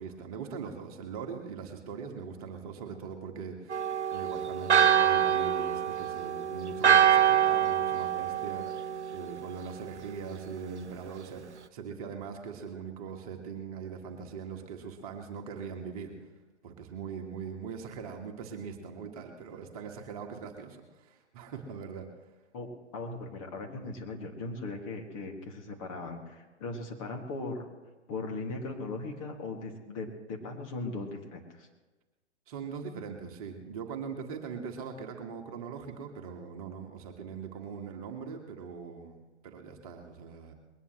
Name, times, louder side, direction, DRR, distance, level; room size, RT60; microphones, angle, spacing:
voice 1, 0.0-16.3 16.6-22.1 32.5-40.5, right 6 dB, 30° right, 3 dB, 1.8 m, -41 dB
Church bell, 3.7-9.4, right 9 dB, 75° right, 0.7 m, -25 dB
voice 2, 22.5-27.7 28.1-31.7, left 3 dB, 30° left, 2 dB, 2.2 m, -38 dB
21.0 x 19.0 x 3.2 m, 1.2 s
figure-of-eight pair, 125°, 35 cm